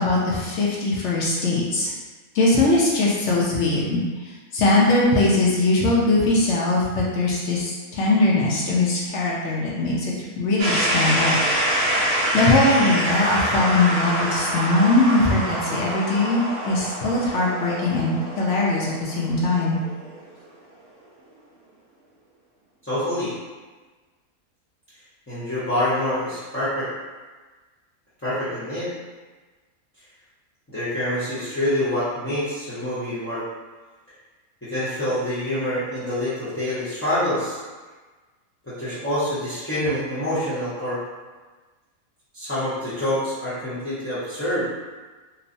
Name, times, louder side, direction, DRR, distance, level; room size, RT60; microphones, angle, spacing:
voice 1, 0.0-1.9 2.3-11.4 12.3-19.8, left 2 dB, 65° left, -5 dB, 0.8 m, -21 dB
sound 1, 10.6-20.4, right 1 dB, 80° right, 1.0 m, -26 dB
voice 2, 22.8-23.3 25.3-26.9 28.2-28.9 30.7-33.4 34.6-37.6 38.6-41.0 42.3-44.6, left 1 dB, 15° left, -13 dB, 0.5 m, -26 dB
3.0 x 2.0 x 2.6 m, 1.3 s
omnidirectional pair, 1.5 m